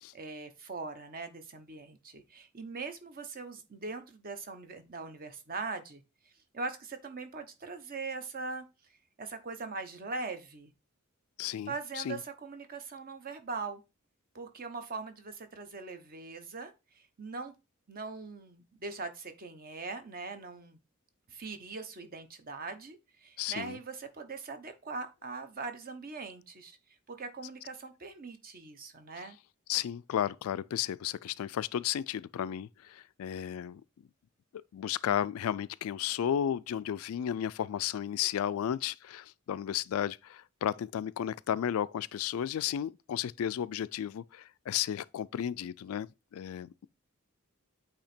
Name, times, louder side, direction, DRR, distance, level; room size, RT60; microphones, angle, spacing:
voice 1, 0.1-6.0 6.5-8.6 9.2-10.7 11.7-13.8 14.3-17.5 17.9-20.8 21.3-26.8 27.1-29.4, right 4 dB, 45° right, 0.9 m, -41 dB
voice 2, 11.4-12.2 23.4-23.8 29.7-33.8 34.7-46.1 46.3-46.9, left 10 dB, 80° left, 0.3 m, -33 dB
8.5 x 2.9 x 4.3 m
head